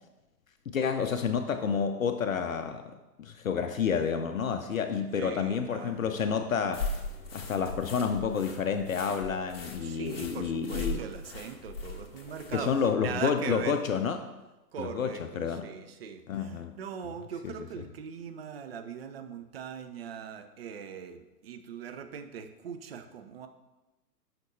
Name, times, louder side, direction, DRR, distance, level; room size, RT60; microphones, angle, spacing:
voice 1, 0.7-6.9 7.3-11.0 12.5-14.2 14.8-15.6 16.3-16.7 17.4-17.5, left 6 dB, 55° left, 7 dB, 0.6 m, -30 dB
voice 2, 5.2-6.0 9.8-13.8 14.7-23.5, right 7 dB, 40° right, 8 dB, 0.5 m, -40 dB
sound 1, 6.7-12.8, left 3 dB, 40° left, 1.2 m, -39 dB
9.5 x 5.9 x 2.7 m, 1.1 s
figure-of-eight pair, 120°, 49 cm